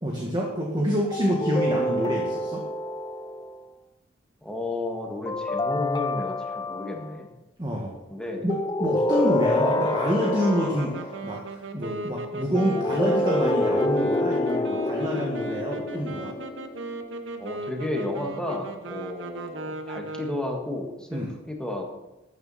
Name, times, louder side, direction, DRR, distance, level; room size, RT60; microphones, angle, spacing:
voice 1, 0.0-2.7 7.6-7.9 8.4-11.4 11.7-16.4 21.1-21.3, equal, 25° right, -2 dB, 1.8 m, -27 dB
sound 1, 1.1-3.6 5.3-7.1 8.5-11.2 12.5-17.1, left 1 dB, 20° left, 0.5 m, -27 dB
voice 2, 4.4-7.3 8.1-8.5 9.1-9.5 17.4-21.2 21.5-21.9, left 1 dB, 5° left, 1 dB, 1.8 m, -32 dB
sound 2, 9.6-20.6, right 2 dB, 65° right, 1.1 m, -37 dB
13.5 x 9.3 x 4.2 m, 0.99 s
head